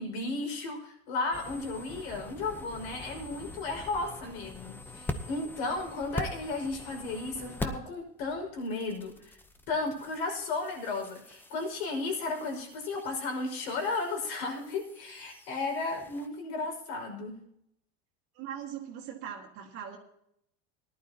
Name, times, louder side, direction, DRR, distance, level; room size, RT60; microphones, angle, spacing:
voice 1, 0.0-9.4 9.7-17.4, left 3 dB, 80° left, 1 dB, 5.5 m, -34 dB
sound 1, 1.3-7.9 8.2-16.3, left 2 dB, 5° left, 0.8 m, -43 dB
voice 2, 18.3-20.0, right 9 dB, 50° right, 0 dB, 1.9 m, -40 dB
18.5 x 11.5 x 2.9 m, 0.74 s
supercardioid pair, 145°, 31 cm